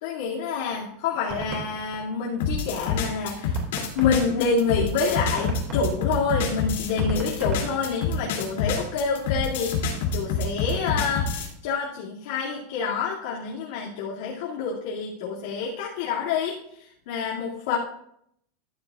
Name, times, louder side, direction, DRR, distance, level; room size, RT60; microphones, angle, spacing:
voice 1, 0.0-3.6 3.9-17.8, left 5 dB, 60° left, -6 dB, 2.6 m, -27 dB
sound 1, 0.7-2.8 3.2-3.3 3.5-8.5, right 3 dB, 25° right, 2.8 m, -38 dB
sound 2, 2.4-11.5, left 5 dB, 90° left, 3.0 m, -27 dB
14.0 x 11.5 x 2.5 m, 0.71 s
supercardioid pair, 180°, 0 cm